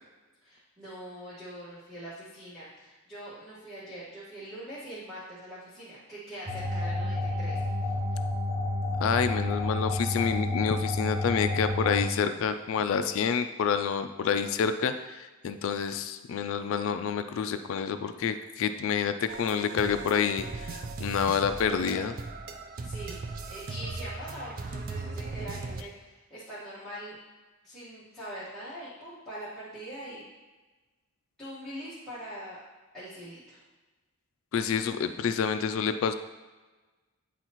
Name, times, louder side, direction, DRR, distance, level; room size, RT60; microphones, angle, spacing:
voice 1, 0.4-7.7 22.8-27.1 27.6-30.2 31.4-32.6 32.9-33.6, right 1 dB, ahead, -14 dB, 1.5 m, -43 dB
sound 1, 6.5-12.0, left 2 dB, 15° right, 0.8 m, -30 dB
voice 2, 9.0-22.2 34.5-36.1, left 6 dB, 65° left, 10 dB, 0.3 m, -28 dB
sound 2, 19.3-25.8, right 3 dB, 40° right, 0.4 m, -38 dB
8.8 x 4.0 x 3.0 m, 1.2 s
head